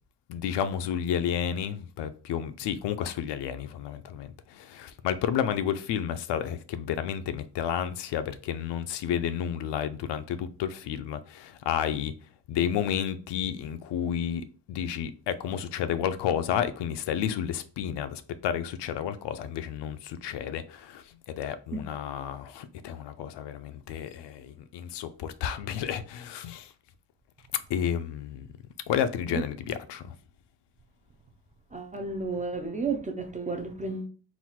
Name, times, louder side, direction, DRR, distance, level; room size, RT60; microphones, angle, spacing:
voice 1, 0.3-12.1 12.5-26.7 27.7-28.5 28.9-30.1, left 9 dB, 90° left, 0.6 m, -31 dB
voice 2, 31.7-34.1, right 4 dB, 20° right, 0.3 m, -32 dB
4.0 x 2.3 x 4.2 m
wide cardioid pair, 175°, 40 cm